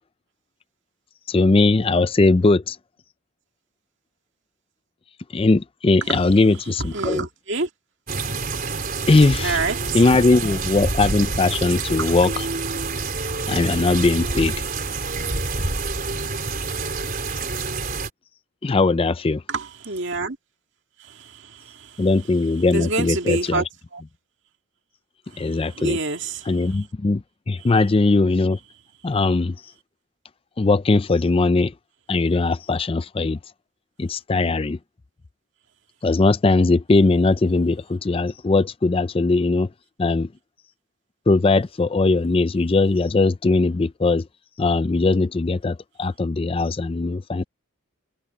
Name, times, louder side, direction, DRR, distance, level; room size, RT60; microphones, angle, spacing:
voice 1, 1.3-2.8 5.3-7.3 9.1-9.6 9.9-12.5 13.5-14.5 18.6-19.4 22.0-23.6 25.4-26.0 26.4-28.6 29.0-29.6 30.6-31.7 32.1-33.4 34.0-34.8 36.0-39.7 40.0-40.3 41.3-44.3 44.6-47.4, left 3 dB, 25° left, 0.4 m, -19 dB
voice 2, 6.9-7.7 9.4-10.0 19.5-20.4 21.1-22.1 22.7-23.6 23.9-24.0 25.6-26.5, right 3 dB, 55° right, 2.3 m, -27 dB
sound 1, 8.1-18.1, right 3 dB, 40° right, 4.3 m, -27 dB
head